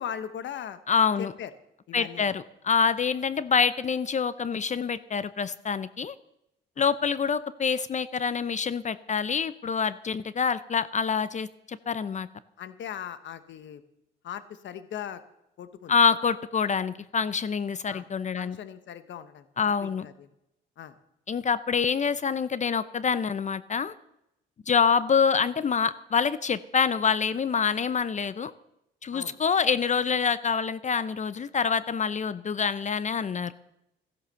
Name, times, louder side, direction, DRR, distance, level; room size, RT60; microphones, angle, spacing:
voice 1, 0.0-0.8 1.2-1.5 1.9-2.3 6.8-6.9 12.6-13.8 14.2-15.2 15.6-15.9 17.9-18.1 18.4-20.3 20.8-20.9 29.1-29.4, left 9 dB, 70° left, 12 dB, 1.2 m, -39 dB
voice 2, 0.9-1.3 1.9-6.1 6.8-12.3 15.9-18.6 19.6-20.1 21.3-23.9 24.7-28.5 29.0-33.5, left 6 dB, 35° left, 16 dB, 0.6 m, -26 dB
15.0 x 11.5 x 6.9 m, 0.84 s
cardioid pair, 90°, 20 cm